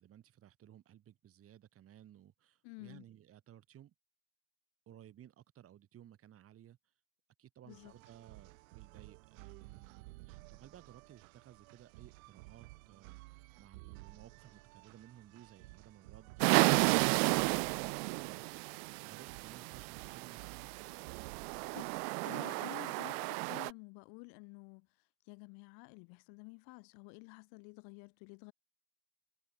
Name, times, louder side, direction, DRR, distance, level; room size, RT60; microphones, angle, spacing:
voice 1, 0.0-3.9 4.9-6.9 7.4-20.7, right 11 dB, 35° right, 5.4 m, -58 dB
voice 2, 2.6-3.0 7.6-7.9 21.7-24.9 25.3-28.5, left 34 dB, 60° left, 1.6 m, -51 dB
sound 1, 7.7-22.1, right 24 dB, 85° right, 2.6 m, -54 dB
sound 2, 16.4-23.7, right 40 dB or more, 65° right, 0.8 m, -33 dB
cardioid pair, 155°, 41 cm